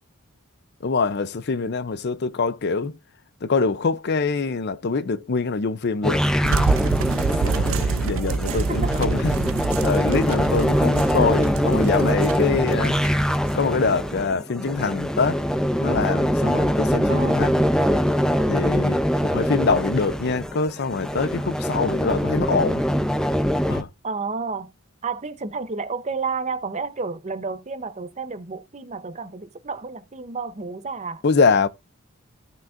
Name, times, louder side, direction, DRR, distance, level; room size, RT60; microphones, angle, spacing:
voice 1, 0.8-3.0 3.4-6.3 7.4-9.3 9.8-13.0 13.5-15.4 15.8-17.7 18.5-22.8 23.7-23.9 31.2-31.7, left 4 dB, 50° left, 0.5 m, -24 dB
sound 1, 6.0-23.8, equal, 5° left, 0.5 m, -23 dB
sound 2, 6.4-14.1, right 5 dB, 65° right, 0.4 m, -27 dB
voice 2, 8.5-9.0 17.1-17.4 24.0-24.7 25.0-31.2, right 4 dB, 30° right, 0.8 m, -31 dB
15.5 x 6.1 x 2.5 m
head